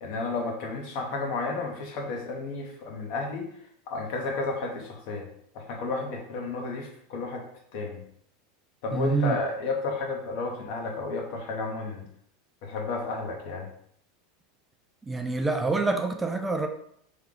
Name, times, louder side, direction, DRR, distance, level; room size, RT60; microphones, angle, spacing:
voice 1, 0.0-3.5 3.9-5.3 5.5-7.4 7.7-8.0 8.8-12.1 12.6-13.7, left 3 dB, 65° left, 1 dB, 0.9 m, -32 dB
voice 2, 8.9-9.4 15.0-16.7, right 3 dB, 10° right, 5 dB, 0.4 m, -26 dB
3.3 x 2.3 x 3.7 m, 0.68 s
supercardioid pair, 120°, 0 cm